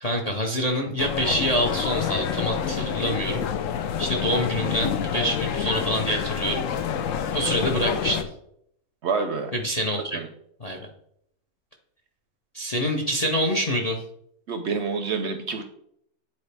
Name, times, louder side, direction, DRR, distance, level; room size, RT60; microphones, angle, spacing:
voice 1, 0.0-3.5 4.0-6.6 7.3-8.3 9.5-10.2 10.6-10.9 12.5-14.0, equal, 40° left, 2 dB, 0.6 m, -26 dB
sound 1, 1.0-8.2, left 8 dB, 70° left, 0.9 m, -28 dB
voice 2, 9.0-9.5 10.1-10.3 14.5-15.6, right 4 dB, 60° right, 7 dB, 0.8 m, -27 dB
9.6 x 4.2 x 3.4 m, 0.71 s
omnidirectional pair, 1.6 m